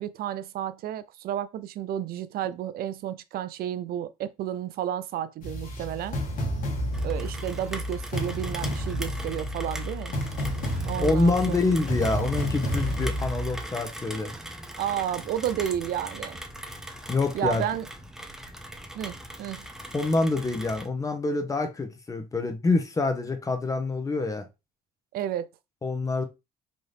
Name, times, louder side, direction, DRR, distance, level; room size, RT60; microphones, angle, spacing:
voice 1, 0.0-6.2 7.0-10.2 10.8-11.6 14.8-16.4 17.3-17.9 18.9-19.7 25.1-25.5, right 11 dB, 65° right, 0.4 m, -31 dB
sound 1, 5.4-13.6, equal, 55° left, 1.4 m, -31 dB
Rain, 6.9-20.9, right 1 dB, 5° right, 0.5 m, -40 dB
voice 2, 10.8-14.3 17.1-17.6 19.9-24.5 25.8-26.2, left 3 dB, 20° left, 0.9 m, -26 dB
4.1 x 2.8 x 3.3 m
cardioid pair, 110°, 17 cm